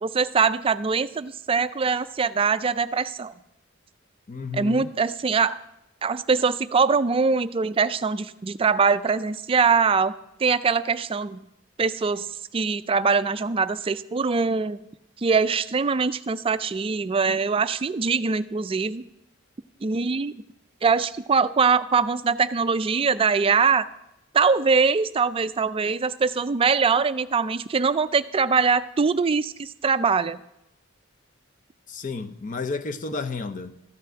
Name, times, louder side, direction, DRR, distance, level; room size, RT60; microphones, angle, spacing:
voice 1, 0.0-3.3 4.5-5.6 6.0-10.1 10.4-11.4 11.8-12.3 12.5-14.8 15.2-19.0 19.8-20.3 20.8-23.9 24.3-30.4, right 5 dB, 25° right, 0.4 m, -22 dB
voice 2, 4.3-4.9 31.9-33.8, left 4 dB, 40° left, 0.7 m, -32 dB
13.5 x 5.9 x 7.6 m
head